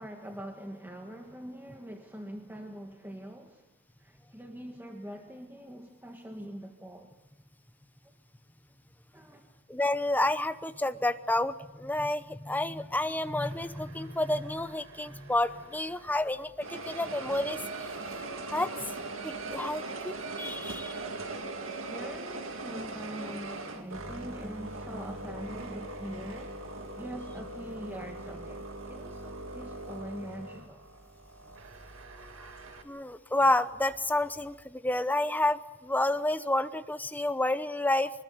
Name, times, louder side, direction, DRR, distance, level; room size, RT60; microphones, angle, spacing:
voice 1, 0.0-3.6 4.0-7.1 9.1-9.4 21.9-26.7 27.0-30.9, equal, 10° right, 3 dB, 1.6 m, -43 dB
voice 2, 9.7-17.6 18.1-18.7 19.2-21.1 32.8-38.1, left 1 dB, 10° left, 11 dB, 0.9 m, -30 dB
sound 1, 13.4-16.2 16.6-32.8, right 2 dB, 70° right, 2.3 m, -41 dB
24.5 x 20.5 x 8.0 m, 1.1 s
head